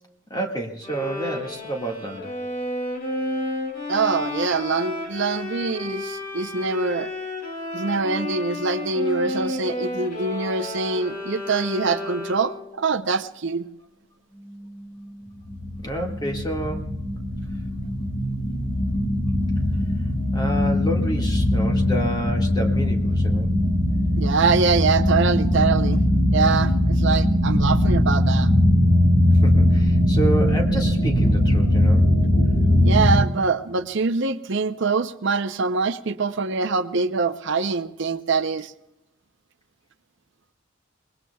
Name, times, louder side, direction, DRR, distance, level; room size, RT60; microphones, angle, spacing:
voice 1, 0.3-2.3 15.8-16.9 20.3-23.5 29.4-32.0, right 1 dB, 20° left, 1 dB, 1.8 m, -29 dB
Bowed string instrument, 0.8-12.7, left 2 dB, 50° left, 4.2 m, -31 dB
voice 2, 3.9-7.1 7.7-13.7 24.2-26.0 26.3-28.5 32.8-38.7, right 4 dB, 65° right, 10 dB, 0.7 m, -24 dB
sound 1, 15.5-33.2, left 1 dB, 75° left, 6.6 m, -20 dB
25.5 x 20.5 x 2.3 m, 0.90 s
head